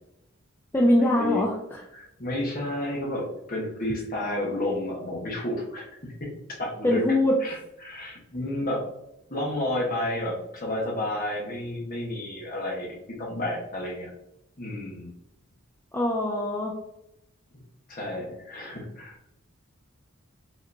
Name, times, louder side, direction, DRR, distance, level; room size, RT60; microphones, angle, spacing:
voice 1, 0.7-1.8 6.8-7.3 15.9-16.7, left 1 dB, 10° left, -2 dB, 0.4 m, -23 dB
voice 2, 1.9-6.3 6.6-7.0 7.4-8.9 9.3-12.9 13.2-14.1 14.6-15.1 17.9-19.3, left 1 dB, 45° left, -2 dB, 1.2 m, -31 dB
5.0 x 2.9 x 2.6 m, 0.86 s
head